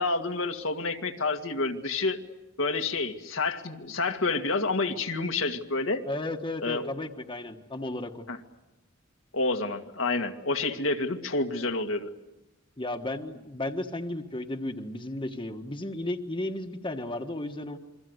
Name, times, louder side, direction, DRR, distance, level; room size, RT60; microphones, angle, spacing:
voice 1, 0.0-2.2 2.6-6.0 6.6-6.9 8.3-8.4 9.3-12.1, left 3 dB, 80° left, 4 dB, 2.0 m, -29 dB
voice 2, 6.1-8.2 12.8-17.8, left 1 dB, 25° left, 5 dB, 1.5 m, -34 dB
28.5 x 23.5 x 8.1 m, 0.97 s
head